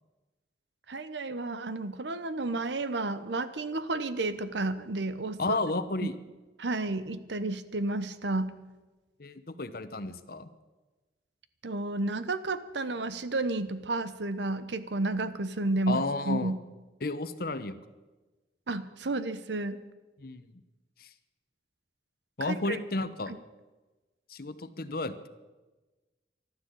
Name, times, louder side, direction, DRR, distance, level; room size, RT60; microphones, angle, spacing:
voice 1, 0.9-5.4 6.6-8.5 11.6-16.6 18.7-19.8 22.4-22.8, right 2 dB, 85° right, 13 dB, 1.0 m, -31 dB
voice 2, 5.4-6.1 9.2-10.5 15.9-16.5 17.0-17.8 20.2-20.4 21.0-21.1 22.4-23.3 24.3-25.3, left 2 dB, 55° left, 12 dB, 1.0 m, -32 dB
14.0 x 12.0 x 8.3 m, 1.2 s
head